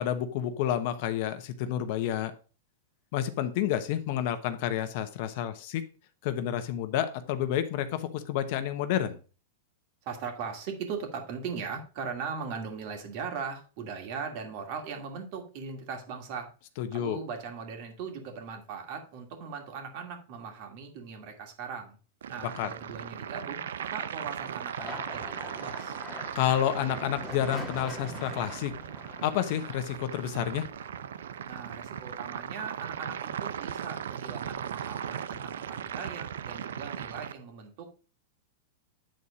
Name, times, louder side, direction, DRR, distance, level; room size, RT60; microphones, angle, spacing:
voice 1, 0.0-2.3 3.1-5.8 6.2-9.2 16.8-17.2 22.6-22.7 26.3-28.7 29.2-30.7, left 11 dB, 50° left, 10 dB, 1.0 m, -29 dB
voice 2, 10.0-16.5 16.9-22.0 22.3-26.0 31.5-37.9, right 6 dB, 50° right, 4 dB, 2.4 m, -39 dB
sound 1, 22.2-37.3, right 8 dB, 90° right, 0.6 m, -38 dB
sound 2, 24.8-33.5 33.9-34.6 34.9-35.8, left 1 dB, 5° left, 1.5 m, -45 dB
9.2 x 4.3 x 5.0 m, 0.35 s
supercardioid pair, 145°, 0 cm